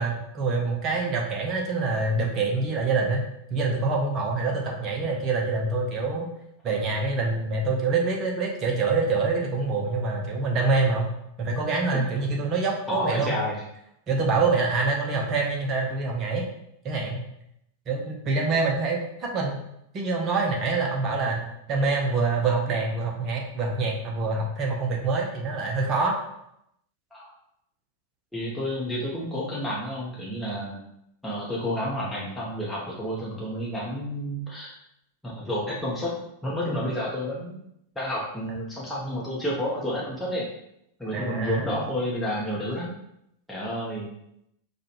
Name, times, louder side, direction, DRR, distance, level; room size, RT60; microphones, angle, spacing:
voice 1, 0.0-3.2 3.5-6.3 6.6-11.1 11.4-13.4 14.1-16.4 16.8-17.2 17.9-19.6 19.9-26.2 41.1-41.7, right 3 dB, 30° right, 0 dB, 0.7 m, -26 dB
voice 2, 12.9-13.6 27.1-27.3 28.3-30.8 31.2-34.7 35.2-36.1 36.4-37.6 37.9-40.5 41.0-42.9 43.5-44.1, equal, 5° left, -7 dB, 0.9 m, -30 dB
4.8 x 2.3 x 3.0 m, 0.78 s
figure-of-eight pair, 90°, 0 cm